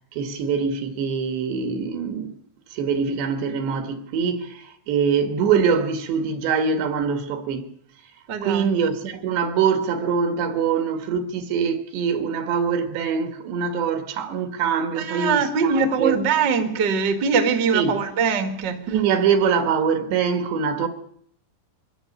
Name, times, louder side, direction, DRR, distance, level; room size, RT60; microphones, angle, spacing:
voice 1, 0.1-2.3 2.7-7.7 8.4-16.2 17.7-17.9 18.9-20.9, right 6 dB, 70° right, 3.8 m, -23 dB
voice 2, 8.3-8.7 15.0-18.8, right 5 dB, 35° right, 1.9 m, -22 dB
23.5 x 14.5 x 9.9 m
omnidirectional pair, 5.4 m